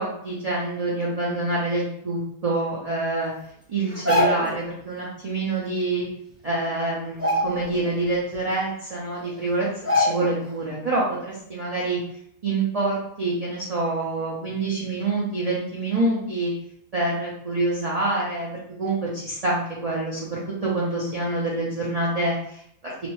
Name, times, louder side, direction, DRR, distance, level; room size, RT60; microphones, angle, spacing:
voice 1, 0.0-3.3 3.7-6.1 6.4-9.7 9.9-12.0 12.4-16.5 16.9-18.5 18.8-23.1, right 2 dB, 85° right, -6 dB, 0.3 m, -26 dB
sound 1, 3.9-4.6 6.1-6.2 6.5-6.7 7.1-7.9 8.3-8.4 9.2-9.3 9.8-10.5 10.8-11.0, left 1 dB, 15° right, 0.6 m, -24 dB
2.5 x 2.1 x 3.0 m, 0.70 s
omnidirectional pair, 1.5 m